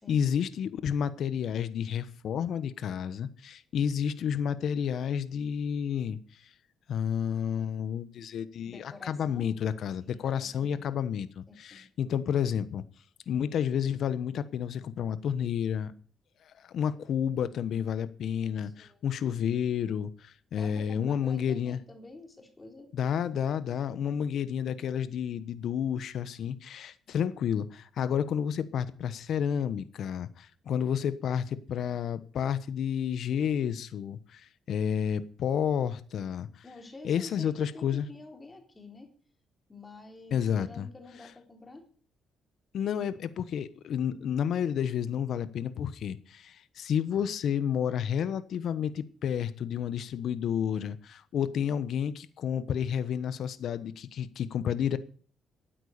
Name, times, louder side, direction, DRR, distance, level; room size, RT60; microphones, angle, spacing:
voice 1, 0.0-6.2 6.9-12.8 13.3-15.9 16.7-21.8 22.9-36.5 37.0-38.1 40.3-40.9 42.7-55.0, left 8 dB, 70° left, 1.1 m, -30 dB
voice 2, 8.6-9.5 10.0-10.8 11.5-11.8 18.6-19.0 20.5-22.9 36.6-39.1 39.7-41.9, left 2 dB, 20° left, 4.0 m, -48 dB
13.0 x 9.2 x 6.8 m
cardioid pair, 90°, 0 cm